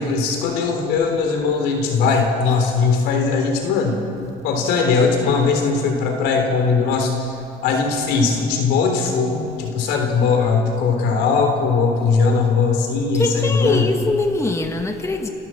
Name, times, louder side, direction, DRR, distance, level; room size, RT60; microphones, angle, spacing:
voice 1, 0.0-4.0 4.4-7.3 7.6-13.9, left 4 dB, 90° left, 3 dB, 3.5 m, -19 dB
voice 2, 13.1-15.3, left 2 dB, 15° left, 4 dB, 1.6 m, -22 dB
30.0 x 12.5 x 7.7 m, 2.7 s
cardioid pair, 110°, 17 cm